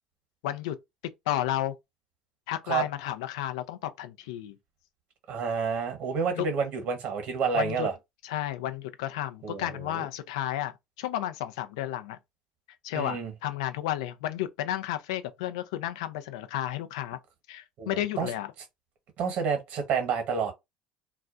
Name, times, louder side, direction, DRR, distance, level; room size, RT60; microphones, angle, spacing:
voice 1, 0.4-0.8 1.3-1.7 2.5-4.6 6.3-6.5 7.5-7.9 8.2-10.7 11.0-12.2 12.8-17.2 17.5-18.5, left 13 dB, 75° left, 0.4 m, -32 dB
voice 2, 5.3-7.9 9.4-10.1 12.9-13.3 17.8-18.3 19.2-20.5, right 6 dB, 60° right, 1.0 m, -29 dB
2.3 x 2.2 x 2.5 m
hypercardioid pair, 70°, 3 cm